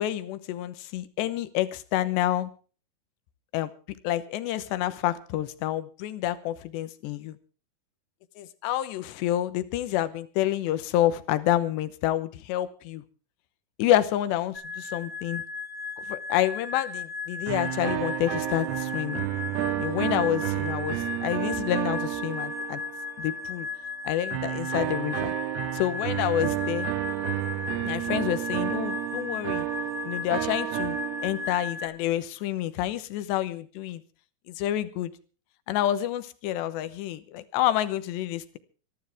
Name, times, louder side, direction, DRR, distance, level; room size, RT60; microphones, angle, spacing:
voice 1, 0.0-2.5 3.5-3.7 4.0-7.4 8.4-13.0 13.8-15.4 16.1-19.3 19.8-22.8 23.2-23.7 24.0-25.3 25.7-26.9 27.8-29.7 30.0-34.0 34.5-35.1 35.7-38.6, left 13 dB, 90° left, 13 dB, 3.3 m, -28 dB
sound 1, 14.5-31.9, left 5 dB, 20° left, 4.4 m, -36 dB
sound 2, 17.5-23.3 24.3-31.7, right 15 dB, 90° right, 3.3 m, -31 dB
25.5 x 12.0 x 3.5 m, 0.37 s
omnidirectional pair, 4.8 m